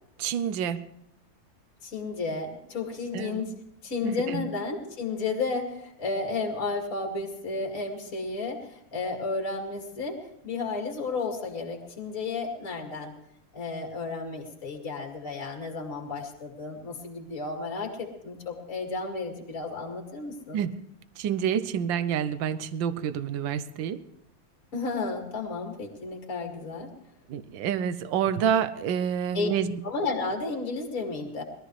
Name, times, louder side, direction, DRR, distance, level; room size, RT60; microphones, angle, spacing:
voice 1, 0.2-0.8 3.1-3.5 4.0-4.5 20.5-20.7 21.2-24.0 27.3-29.8, right 8 dB, 75° right, 13 dB, 1.5 m, -28 dB
voice 2, 1.8-3.5 3.8-10.2 10.4-13.1 13.5-20.6 24.7-26.9 29.3-29.5 29.8-31.4, left 3 dB, 40° left, 1 dB, 2.8 m, -32 dB
22.0 x 14.0 x 3.2 m, 0.79 s
omnidirectional pair, 2.1 m